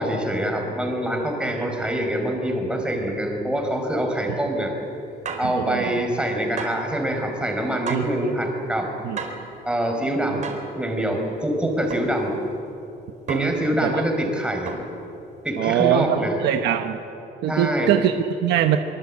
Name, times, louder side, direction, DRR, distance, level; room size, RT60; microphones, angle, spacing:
voice 1, 0.0-4.7 5.4-8.9 9.7-10.4 10.8-12.3 13.3-14.7 15.4-16.3 17.5-18.0, right 1 dB, 5° right, 2 dB, 5.1 m, -25 dB
sound 1, 5.2-5.6 6.6-6.9 7.9-8.2 9.2-9.5 10.4-10.7 11.9-12.2 13.3-13.7 14.7-15.0, right 5 dB, 45° right, 4.5 m, -33 dB
voice 2, 5.5-5.9 7.9-8.1 9.0-9.2 13.3-13.5 13.8-14.0 15.6-17.0 17.4-18.8, right 10 dB, 90° right, 6 dB, 1.1 m, -22 dB
24.5 x 24.0 x 8.8 m, 2.9 s
cardioid pair, 135°, 17 cm